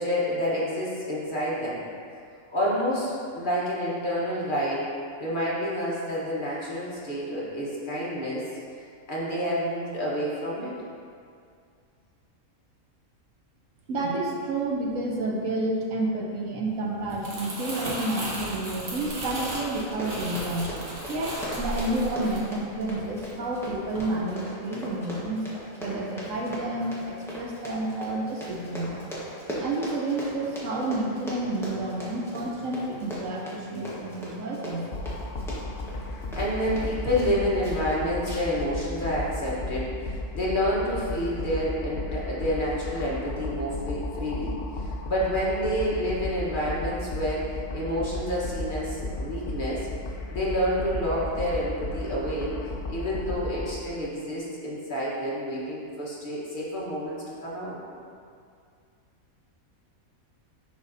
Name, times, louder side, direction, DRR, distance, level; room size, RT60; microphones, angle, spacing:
voice 1, 0.0-1.8 2.5-8.5 9.1-10.8 36.3-49.9 50.3-52.6 52.9-57.8, equal, 40° left, -7 dB, 1.3 m, -29 dB
voice 2, 13.9-20.7 21.1-25.5 25.8-29.1 29.6-34.9 36.0-36.2, right 2 dB, 70° right, -1 dB, 1.1 m, -30 dB
Crumpling crinkling, 16.9-23.3 23.7-24.0, right 1 dB, 45° right, 1.4 m, -35 dB
Run, 19.9-37.3 37.6-37.9 38.3-38.6 39.0-39.1, equal, ahead, 1.0 m, -39 dB
sound 1, 34.9-53.7, left 2 dB, 60° left, 0.5 m, -34 dB
10.5 x 3.8 x 2.7 m, 2.3 s
omnidirectional pair, 1.5 m